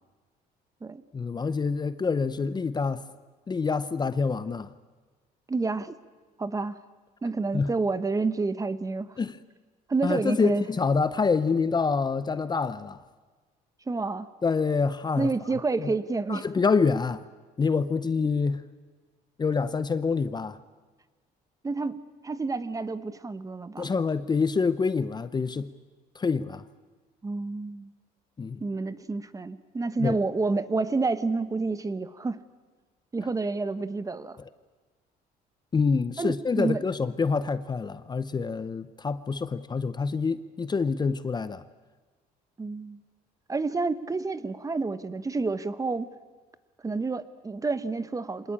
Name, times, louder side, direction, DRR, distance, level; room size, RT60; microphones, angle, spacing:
voice 1, 1.1-3.0 3.5-4.7 7.5-7.7 9.2-9.4 10.0-13.0 14.4-15.3 15.8-15.9 16.3-17.2 17.6-18.6 19.4-20.6 23.8-25.7 26.1-26.7 28.4-28.6 30.0-30.2 35.7-41.6, left 5 dB, 25° left, 0.7 m, -26 dB
voice 2, 5.5-5.9 6.4-6.8 7.2-9.1 9.9-10.7 13.9-14.3 15.2-16.6 21.6-23.9 27.2-27.9 28.6-32.4 33.1-34.4 36.2-36.8 42.6-43.0 43.5-46.1 46.8-48.5, right 3 dB, 20° right, 1.0 m, -29 dB
25.5 x 19.5 x 8.8 m
cardioid pair, 110°, 17 cm